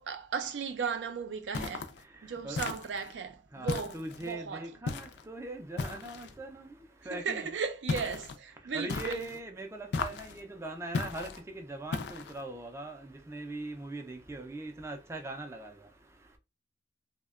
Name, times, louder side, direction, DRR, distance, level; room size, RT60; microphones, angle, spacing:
voice 1, 0.0-1.9 2.2-4.8 7.0-9.3, right 6 dB, 80° right, 0.4 m, -36 dB
sound 1, 1.5-2.0 2.5-3.1 3.7-4.3 4.8-5.2 5.8-6.3 7.9-8.4 8.9-9.4 9.9-10.4 10.9-11.4 11.9-12.4, left 4 dB, 65° left, 0.3 m, -36 dB
voice 2, 2.0-2.6 3.5-7.5 8.6-16.4, right 2 dB, 15° right, 0.3 m, -41 dB
2.7 x 2.1 x 2.3 m
head